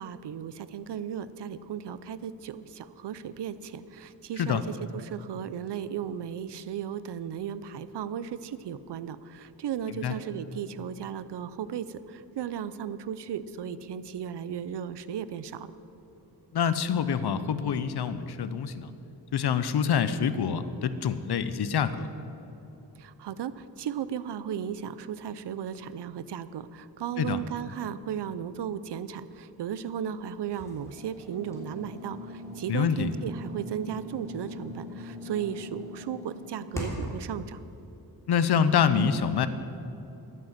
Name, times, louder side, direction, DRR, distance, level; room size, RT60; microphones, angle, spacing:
voice 1, 0.0-15.7 23.0-37.6, right 8 dB, 85° right, 15 dB, 0.6 m, -35 dB
voice 2, 16.5-18.9 19.3-22.1 27.2-27.4 32.7-33.1 38.3-39.5, left 7 dB, 75° left, 12 dB, 0.8 m, -26 dB
sound 1, 30.5-37.2, equal, 5° left, 3.0 m, -40 dB
12.0 x 9.3 x 7.4 m, 2.9 s
wide cardioid pair, 115°, 40 cm